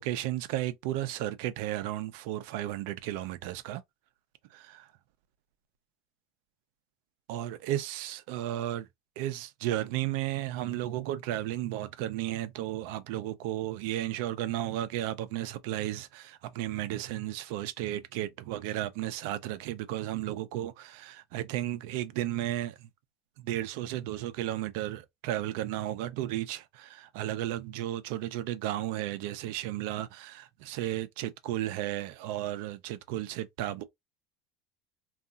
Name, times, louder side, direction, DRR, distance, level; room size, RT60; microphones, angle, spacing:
voice 1, 0.0-3.8 4.5-4.9 7.3-8.9 9.2-22.9 23.4-33.8, right 13 dB, 75° right, 0.4 m, -34 dB
2.7 x 2.3 x 2.3 m
supercardioid pair, 95°, 0 cm